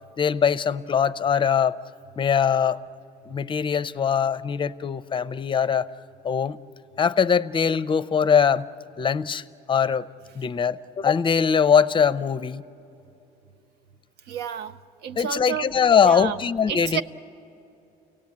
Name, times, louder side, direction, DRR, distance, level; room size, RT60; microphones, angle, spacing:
voice 1, 0.2-1.8 2.2-2.8 3.3-5.9 6.2-6.6 7.0-8.6 9.0-9.4 9.7-10.0 10.4-12.6 15.2-17.0, left 7 dB, 30° left, 16 dB, 0.5 m, -21 dB
voice 2, 14.3-15.7 16.0-16.4 16.7-17.0, right 8 dB, 75° right, 10 dB, 0.7 m, -30 dB
29.0 x 18.0 x 8.5 m, 2.8 s
cardioid pair, 110°, 17 cm